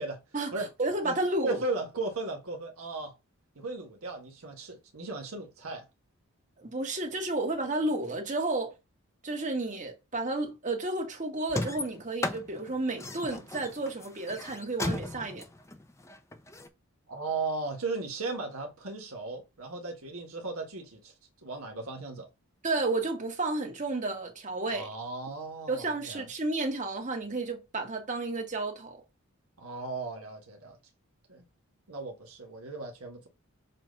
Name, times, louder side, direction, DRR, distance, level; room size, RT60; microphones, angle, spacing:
voice 1, 0.3-1.6 6.6-8.7 9.2-15.4 22.6-24.9 25.7-29.0, right 2 dB, 35° right, 1.4 m, -32 dB
voice 2, 1.4-3.2 3.5-5.8 17.1-21.1 21.4-22.3 24.7-26.3 29.6-30.8 31.3-31.4 31.9-33.3, right 3 dB, 75° right, 1.5 m, -36 dB
sound 1, 11.5-16.7, left 2 dB, 15° left, 0.5 m, -36 dB
7.5 x 2.5 x 5.2 m
head